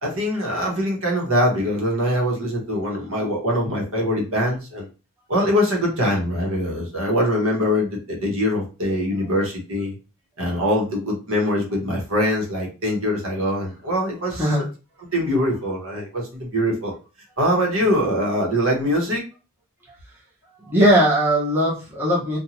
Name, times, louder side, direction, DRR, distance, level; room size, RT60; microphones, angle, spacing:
voice 1, 0.0-4.9 5.3-9.9 10.4-14.5 15.1-16.9 17.4-19.2, equal, 65° right, -1 dB, 1.0 m, -23 dB
voice 2, 20.6-22.4, equal, 10° right, -5 dB, 0.7 m, -19 dB
2.6 x 2.3 x 2.8 m, 0.33 s
head